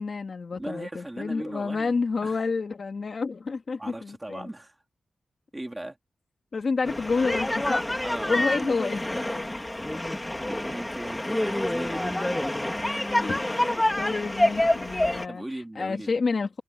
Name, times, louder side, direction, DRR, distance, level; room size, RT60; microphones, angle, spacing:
voice 1, 0.0-4.5 6.5-7.8 8.3-9.5 13.1-15.4 15.8-16.6, left 4 dB, 45° left, 2.0 m, -29 dB
voice 2, 0.6-1.9 2.2-2.4 3.8-4.8 5.5-6.0 8.0-8.6 10.4-12.6 15.3-16.1, right 1 dB, 10° right, 3.7 m, -38 dB
sound 1, 6.8-15.3, left 1 dB, 10° left, 2.3 m, -27 dB
wide cardioid pair, 160°, 0 cm